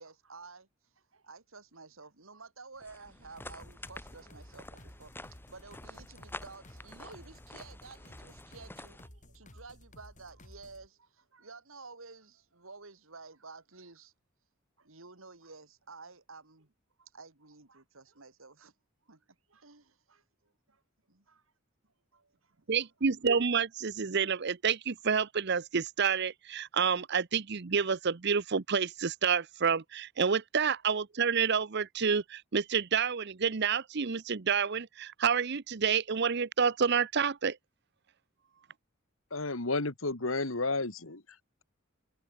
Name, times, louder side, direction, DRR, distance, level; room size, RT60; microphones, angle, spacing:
voice 1, 0.0-14.1 14.8-16.7 17.0-18.7 19.0-20.8 21.1-21.5 21.8-22.6, right 4 dB, 85° right, 3.2 m, -52 dB
sound 1, 2.8-9.1, left 2 dB, 10° left, 3.1 m, -49 dB
sound 2, 3.4-10.9, left 1 dB, 40° left, 6.3 m, -55 dB
voice 2, 22.7-37.6, right 6 dB, 55° right, 0.8 m, -29 dB
voice 3, 39.3-41.2, left 3 dB, 80° left, 2.4 m, -32 dB
head